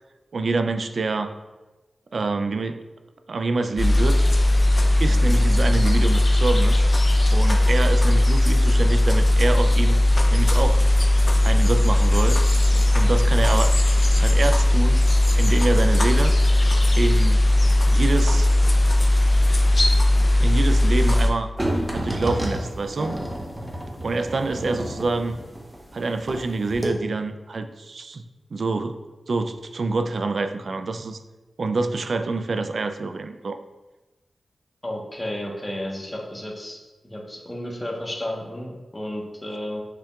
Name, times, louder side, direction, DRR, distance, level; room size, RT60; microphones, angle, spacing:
voice 1, 0.3-1.3 2.1-2.8 3.3-4.3 5.0-6.9 7.3-10.8 11.4-12.4 12.9-13.7 14.2-15.0 15.3-16.3 17.0-17.4 17.9-18.5 20.4-21.5 21.9-23.2 24.0-25.4 25.9-28.2 28.5-31.2 31.6-33.6, right 3 dB, 70° right, 8 dB, 0.3 m, -26 dB
sound 1, 3.8-21.3, left 1 dB, 40° left, 0.5 m, -18 dB
sound 2, 21.6-26.4 26.7-26.9, right 1 dB, 20° right, 0.9 m, -30 dB
voice 2, 34.8-36.8 37.0-39.8, left 1 dB, 15° left, -2 dB, 1.1 m, -32 dB
6.5 x 3.4 x 2.3 m, 1.1 s
cardioid pair, 55°, 0 cm